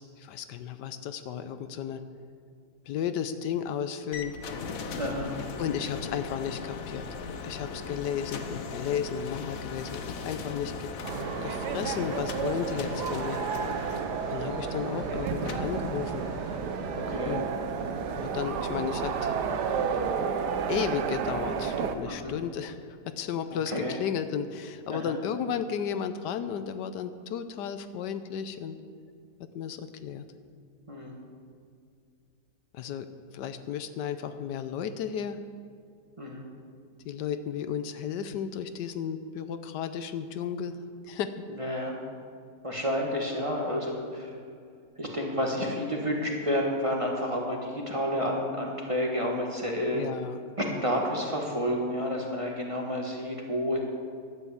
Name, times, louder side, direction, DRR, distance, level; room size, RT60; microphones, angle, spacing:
voice 1, 0.0-2.0 2.9-4.3 5.6-7.1 7.4-10.9 11.4-13.4 14.3-16.2 17.2-17.5 18.2-19.3 20.7-28.8 29.5-30.2 32.7-33.1 33.3-35.4 37.0-40.8 41.0-41.3 49.9-50.4 50.7-50.8, left 8 dB, 75° left, 10 dB, 1.2 m, -33 dB
sound 1, 4.1-22.0, left 4 dB, 60° left, 1.2 m, -40 dB
voice 2, 5.0-5.3 16.9-17.4 22.1-22.3 23.7-24.0 24.9-25.2 30.9-31.2 36.2-36.5 41.6-42.0 42.6-44.3 45.0-50.0 50.6-53.8, equal, 20° right, -1 dB, 1.5 m, -30 dB
sound 2, 11.0-22.0, right 6 dB, 75° right, 1.4 m, -31 dB
11.5 x 7.8 x 8.3 m, 2.3 s
omnidirectional pair, 1.9 m